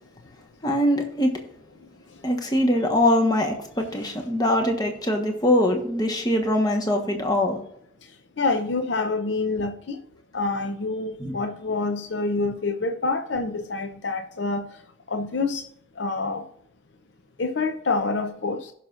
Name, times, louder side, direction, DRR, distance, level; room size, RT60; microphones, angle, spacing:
voice 1, 0.6-1.4 2.2-7.6 11.2-11.4, left 1 dB, 20° left, 2 dB, 1.2 m, -22 dB
voice 2, 8.4-10.0 10.3-14.6 15.1-15.6 16.0-16.4 17.4-18.7, left 3 dB, 60° left, 6 dB, 0.7 m, -27 dB
17.0 x 5.9 x 2.5 m, 0.70 s
head